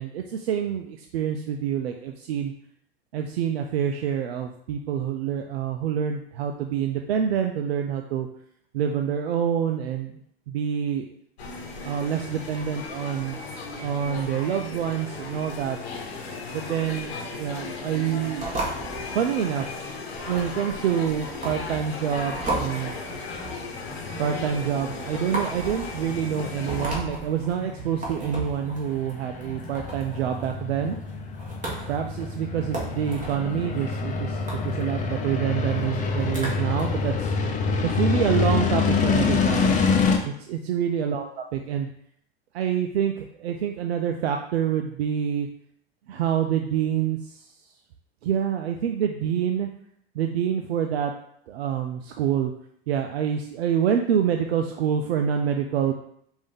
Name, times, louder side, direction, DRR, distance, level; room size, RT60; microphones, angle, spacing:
voice 1, 0.0-2.5 3.1-8.3 8.7-10.2 10.5-11.1 11.8-13.4 13.8-15.8 16.5-18.5 19.1-19.7 20.3-23.2 24.2-31.0 31.9-37.3 37.8-41.9 42.5-45.5 46.1-47.5 48.2-49.7 50.1-51.1 51.5-52.5 52.9-55.9, right 8 dB, 80° right, 4 dB, 0.5 m, -27 dB
sound 1, 11.4-26.9, left 4 dB, 85° left, 1.1 m, -36 dB
sound 2, 18.4-36.8, right 2 dB, 25° right, 1.5 m, -36 dB
sound 3, 22.4-40.2, left 5 dB, 25° left, 0.7 m, -27 dB
5.1 x 2.6 x 3.7 m, 0.69 s
hypercardioid pair, 105°, 31 cm